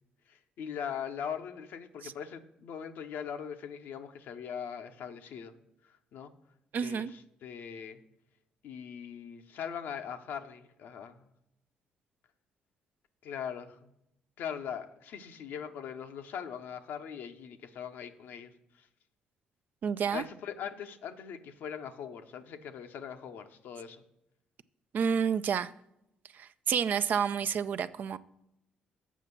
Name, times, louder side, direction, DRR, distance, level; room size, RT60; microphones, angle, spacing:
voice 1, 0.3-5.5 6.1-6.3 6.8-8.0 8.6-11.2 13.2-13.9 14.4-18.5 18.8-18.9 20.1-24.0, left 8 dB, 70° left, 7 dB, 0.8 m, -41 dB
voice 2, 6.7-7.1 19.8-20.2 24.9-25.7 26.3-28.2, right 7 dB, 55° right, 12 dB, 0.4 m, -29 dB
7.2 x 5.7 x 7.1 m, 0.85 s
hypercardioid pair, 50°, 4 cm